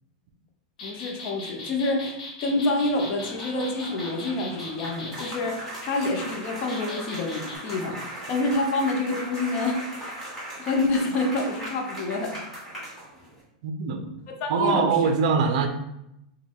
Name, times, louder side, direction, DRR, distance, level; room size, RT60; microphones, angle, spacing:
sound 1, 0.8-5.3 6.7-7.6, left 3 dB, 85° left, 1.1 m, -39 dB
voice 1, 0.8-10.2 10.6-12.4 14.3-15.0, left 2 dB, 35° left, 2 dB, 0.7 m, -27 dB
sound 2, 2.4-13.4, right 1 dB, 5° left, 1.6 m, -39 dB
voice 2, 13.6-14.1 14.5-15.7, right 5 dB, 55° right, 6 dB, 0.6 m, -23 dB
5.1 x 2.2 x 3.6 m, 0.84 s
supercardioid pair, 160°, 4 cm